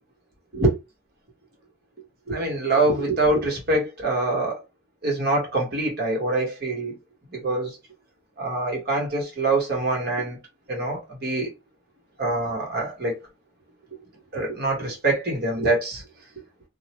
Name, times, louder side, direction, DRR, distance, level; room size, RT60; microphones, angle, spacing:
voice 1, 2.3-4.6 5.0-7.0 7.3-7.8 8.4-10.4 10.7-11.5 12.2-13.2 14.3-16.0, right 2 dB, 50° right, 1.1 m, -24 dB
2.3 x 2.1 x 2.9 m
head